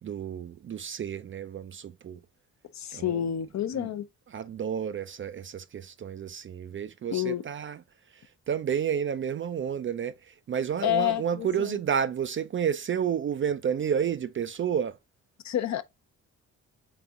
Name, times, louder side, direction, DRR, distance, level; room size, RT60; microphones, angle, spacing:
voice 1, 0.0-2.2 2.9-3.2 3.7-3.9 4.3-7.8 8.1-15.0, right 8 dB, 35° right, 0.4 m, -31 dB
voice 2, 2.7-4.1 7.1-7.4 10.8-11.8 15.4-15.8, left 12 dB, 45° left, 0.6 m, -29 dB
4.2 x 3.4 x 3.5 m
hypercardioid pair, 45°, 38 cm